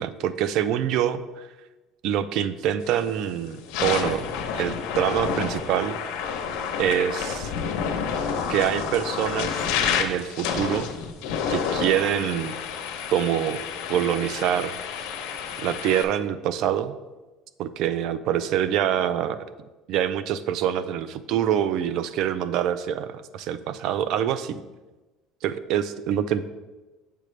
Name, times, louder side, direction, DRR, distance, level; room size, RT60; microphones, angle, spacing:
voice 1, 0.0-1.5 2.0-4.3 4.5-6.0 6.8-7.5 8.5-9.7 10.0-10.9 11.5-12.6 13.1-13.6 13.9-14.7 15.6-17.0 17.6-19.4 19.9-24.6 25.4-26.4, right 10 dB, 65° right, 13 dB, 0.4 m, -25 dB
sound 1, 2.9-3.1 3.6-16.0, left 7 dB, 80° left, 0.7 m, -29 dB
7.6 x 5.1 x 3.2 m, 1.2 s
cardioid pair, 130°, 0 cm